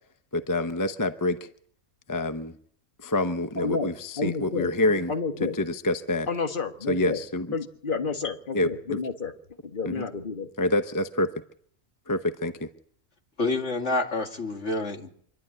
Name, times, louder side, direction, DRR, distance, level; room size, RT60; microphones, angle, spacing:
voice 1, 0.3-1.5 2.1-2.5 3.0-5.1 5.6-6.3 6.9-7.5 8.5-9.0 9.9-10.0 10.6-11.3 12.1-12.7, left 2 dB, 20° left, 9 dB, 0.7 m, -27 dB
voice 2, 3.6-4.7 5.1-5.6 6.3-7.2 7.5-9.3 9.6-10.5, left 4 dB, 40° left, 6 dB, 1.7 m, -30 dB
voice 3, 13.4-15.1, left 2 dB, 55° left, 3 dB, 2.6 m, -28 dB
26.0 x 11.5 x 9.8 m, 0.63 s
omnidirectional pair, 1.4 m